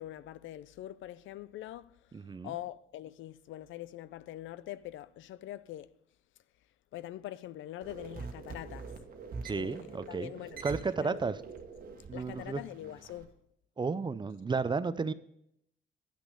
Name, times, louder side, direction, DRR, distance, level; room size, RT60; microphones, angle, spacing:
voice 1, 0.0-5.9 6.9-8.9 9.5-11.2 12.1-13.3, left 14 dB, 75° left, 0.4 m, -44 dB
voice 2, 2.1-2.5 9.4-10.3 10.6-11.4 12.1-12.6 13.8-15.1, right 4 dB, 25° right, 0.5 m, -33 dB
sound 1, 7.8-13.2, right 4 dB, 45° right, 1.3 m, -45 dB
10.0 x 5.9 x 5.4 m
cardioid pair, 90°, 20 cm